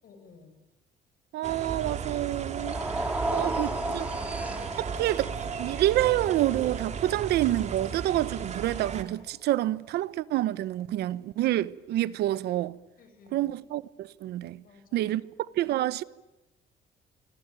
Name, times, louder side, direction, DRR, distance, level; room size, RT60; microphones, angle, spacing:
voice 1, 0.0-0.6 3.2-4.4 13.0-13.5 14.6-15.4, left 4 dB, 60° left, 6.9 m, -55 dB
voice 2, 1.3-4.1 4.8-12.8 13.3-14.6 14.9-15.2 15.6-16.0, right 14 dB, 75° right, 1.0 m, -28 dB
sound 1, 1.4-9.0, right 6 dB, 40° right, 2.9 m, -35 dB
sound 2, 2.5-8.8, right 1 dB, 10° right, 2.9 m, -35 dB
26.5 x 24.5 x 9.1 m
cardioid pair, 110°, 17 cm